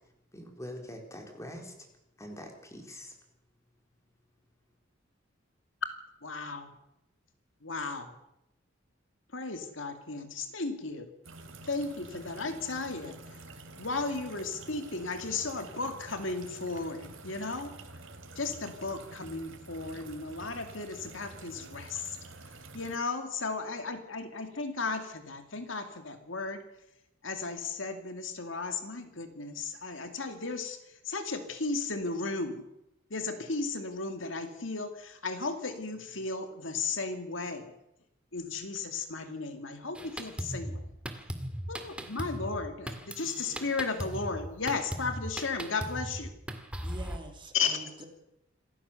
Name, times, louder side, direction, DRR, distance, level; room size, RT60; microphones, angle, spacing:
voice 1, 0.3-1.7 2.2-3.1, equal, 15° left, 3 dB, 4.0 m, -44 dB
voice 2, 6.2-6.7 7.6-8.1 9.3-11.1 11.7-13.2 13.7-17.7 18.4-22.2 22.7-26.6 27.2-30.8 31.0-32.6 33.1-37.7 38.3-40.9 41.7-46.3 47.5-47.8, left 4 dB, 70° left, 7 dB, 2.4 m, -35 dB
sound 1, 11.2-23.0, right 2 dB, 80° right, 2.9 m, -48 dB
Drum kit, 39.9-47.2, equal, 5° right, 2.0 m, -38 dB
voice 3, 46.8-48.0, right 2 dB, 25° right, 4 dB, 3.1 m, -45 dB
27.0 x 15.0 x 7.0 m, 0.86 s
head